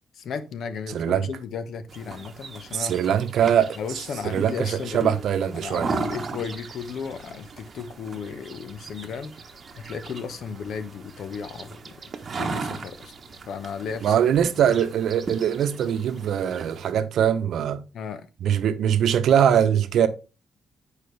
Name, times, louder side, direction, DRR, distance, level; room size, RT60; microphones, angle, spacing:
voice 1, 0.1-2.9 3.8-5.2 5.5-9.3 9.8-12.0 12.4-13.1 13.5-14.3 14.6-14.7 17.9-18.3, left 6 dB, 65° left, 0.9 m, -34 dB
voice 2, 0.9-1.3 2.7-5.9 14.0-17.8 18.4-20.1, right 9 dB, 75° right, 0.8 m, -22 dB
sound 1, 1.9-16.9, right 4 dB, 40° right, 1.0 m, -37 dB
8.6 x 4.8 x 3.2 m
cardioid pair, 115°, 0 cm